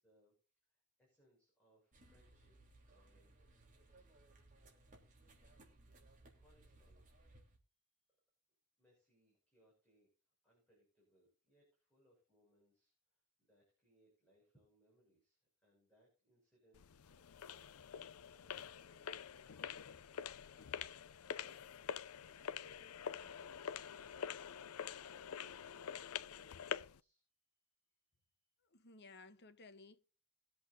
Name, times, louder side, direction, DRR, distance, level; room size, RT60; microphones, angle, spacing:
voice 1, 0.0-2.6 2.8-3.5 6.1-7.3 8.8-10.1 10.4-27.2, equal, 5° left, 6.6 m, -74 dB
sound 1, 1.9-7.6, right 2 dB, 35° right, 3.6 m, -64 dB
sound 2, 16.7-27.0, left 8 dB, 75° left, 0.5 m, -46 dB
voice 2, 28.7-30.0, left 3 dB, 50° left, 1.1 m, -58 dB
22.0 x 8.0 x 2.7 m
head